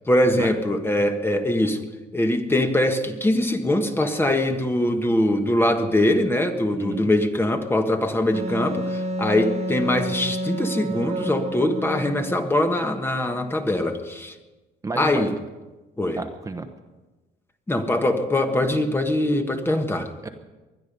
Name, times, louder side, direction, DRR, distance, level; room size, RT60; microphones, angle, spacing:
voice 1, 0.1-14.3 15.0-15.4 16.0-16.2 17.7-20.1, left 1 dB, 15° left, 6 dB, 1.4 m, -22 dB
Wind instrument woodwind instrument, 8.3-12.4, right 1 dB, 40° right, 1.7 m, -29 dB
voice 2, 14.8-15.2 16.2-16.7 20.2-20.3, right 3 dB, 20° right, 5 dB, 1.1 m, -30 dB
20.5 x 11.5 x 5.4 m, 1.2 s
cardioid pair, 110°, 17 cm